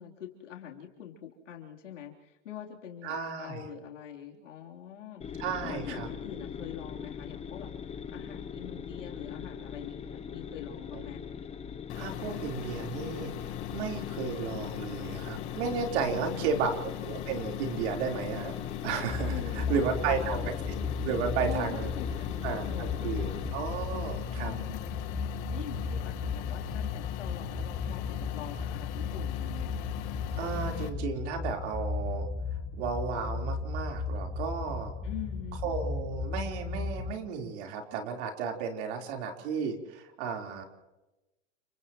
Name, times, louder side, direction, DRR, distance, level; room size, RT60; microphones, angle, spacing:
voice 1, 0.0-11.2 16.1-16.7 19.3-20.5 21.4-23.7 24.4-25.2 25.5-29.7 35.0-35.6, left 9 dB, 90° left, 0 dB, 3.7 m, -44 dB
voice 2, 3.0-3.6 5.4-6.1 10.9-11.0 12.0-18.5 18.8-20.7 21.0-21.9 22.4-24.5 30.4-32.3 32.7-34.9 35.6-40.6, right 6 dB, 65° right, 2 dB, 4.1 m, -33 dB
sound 1, 5.2-23.5, left 7 dB, 15° left, 1.0 m, -41 dB
sound 2, 11.9-30.9, left 13 dB, 50° left, 1.7 m, -40 dB
sound 3, 19.1-37.1, left 5 dB, ahead, 2.1 m, -35 dB
30.0 x 28.5 x 3.1 m, 1.0 s
hypercardioid pair, 115°, 36 cm